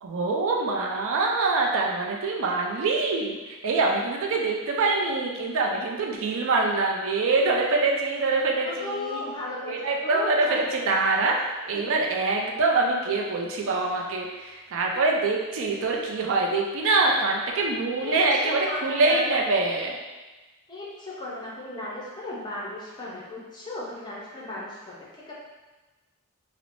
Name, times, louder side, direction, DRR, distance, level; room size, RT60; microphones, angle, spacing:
voice 1, 0.0-9.2 9.7-20.0, right 3 dB, 65° right, 0 dB, 0.4 m, -25 dB
voice 2, 8.6-10.9 11.7-11.8 17.9-18.1 18.4-19.3 20.7-25.3, left 2 dB, 20° left, -5 dB, 0.6 m, -36 dB
3.0 x 2.0 x 2.6 m, 1.2 s
head